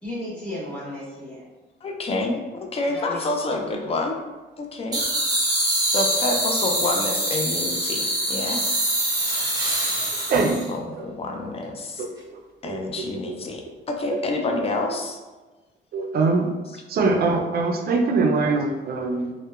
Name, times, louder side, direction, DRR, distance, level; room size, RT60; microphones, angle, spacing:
voice 1, 0.0-1.5 2.9-3.2 3.5-4.0, left 1 dB, 5° left, -9 dB, 1.4 m, -35 dB
voice 2, 1.8-4.2 4.6-5.0 5.9-8.6 10.7-12.0 12.6-13.6 13.9-15.2 16.7-16.8, left 2 dB, 30° left, 2 dB, 0.4 m, -28 dB
sound 1, 4.9-10.7, right 1 dB, 20° right, 0.7 m, -24 dB
voice 3, 12.0-12.4 12.6-12.8 13.2-13.3 15.9-16.5 16.9-19.3, right 3 dB, 50° right, 3 dB, 0.4 m, -23 dB
2.7 x 2.1 x 2.3 m, 1.2 s
cardioid pair, 90°, 20 cm